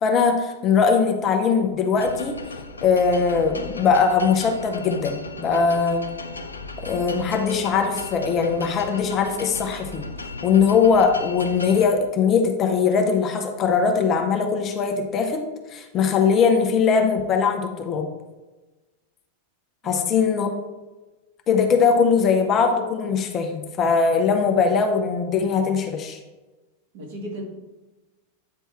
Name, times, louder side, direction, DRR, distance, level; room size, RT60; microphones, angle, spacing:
voice 1, 0.0-2.4 2.8-6.1 6.8-10.1 10.4-18.1 19.8-20.5 21.5-26.2, left 5 dB, 30° left, 4 dB, 0.8 m, -21 dB
sound 1, 2.0-11.9, left 2 dB, 75° left, 0.5 m, -37 dB
voice 2, 19.8-20.2 26.9-27.4, right 1 dB, 50° right, -1 dB, 2.1 m, -36 dB
8.5 x 3.4 x 4.4 m, 1.1 s
figure-of-eight pair, 90°, 0 cm